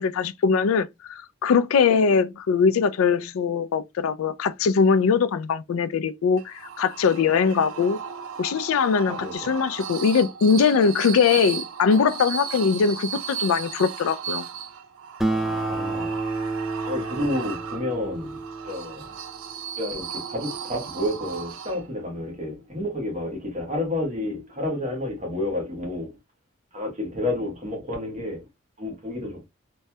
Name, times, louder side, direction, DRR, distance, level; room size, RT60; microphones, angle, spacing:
voice 1, 0.0-8.0 8.4-14.5, left 5 dB, 80° left, 0.3 m, -21 dB
sound 1, 6.4-22.1, right 7 dB, 85° right, 0.5 m, -36 dB
voice 2, 9.1-9.5 15.3-16.2 16.8-19.1 19.8-26.1 26.7-28.4 28.8-29.5, left 1 dB, 35° right, 1.1 m, -30 dB
Acoustic guitar, 15.2-20.0, right 2 dB, ahead, 0.3 m, -30 dB
3.1 x 2.3 x 2.7 m
head